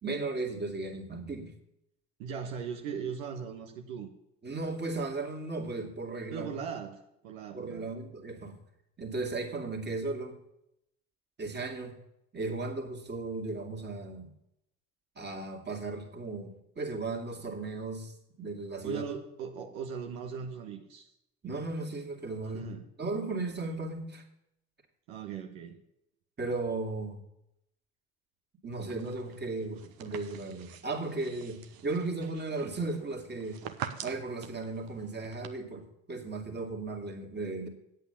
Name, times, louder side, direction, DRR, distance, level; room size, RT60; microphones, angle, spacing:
voice 1, 0.0-1.5 4.4-6.5 7.5-8.6 9.0-10.4 11.4-12.0 12.3-14.3 15.2-19.0 21.4-24.2 26.4-27.2 28.6-33.6 34.0-37.7, right 3 dB, 25° right, 2 dB, 2.6 m, -36 dB
voice 2, 2.2-4.1 6.3-7.9 18.8-21.1 22.5-22.9 25.1-25.8, right 7 dB, 75° right, 4 dB, 1.4 m, -39 dB
sound 1, 28.8-35.5, right 9 dB, 55° right, 1.3 m, -46 dB
9.1 x 8.3 x 6.8 m, 0.81 s
hypercardioid pair, 70°, 41 cm